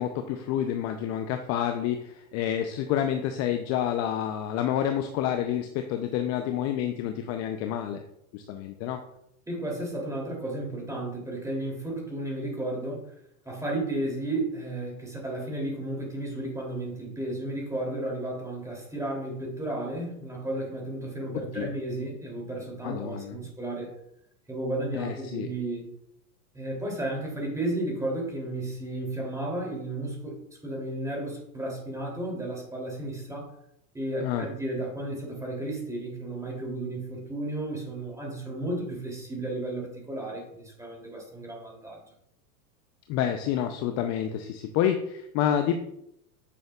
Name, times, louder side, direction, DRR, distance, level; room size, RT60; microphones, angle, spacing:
voice 1, 0.0-8.0 8.3-9.0 21.5-21.7 22.8-23.4 24.9-25.5 34.2-34.5 43.1-45.7, left 10 dB, 35° left, 6 dB, 0.6 m, -28 dB
voice 2, 9.5-13.0 13.4-23.9 24.5-25.9 26.5-30.3 30.6-33.5 33.9-42.0, right 1 dB, 5° right, -1 dB, 3.0 m, -33 dB
9.7 x 6.3 x 2.4 m, 0.76 s
hypercardioid pair, 105°, 46 cm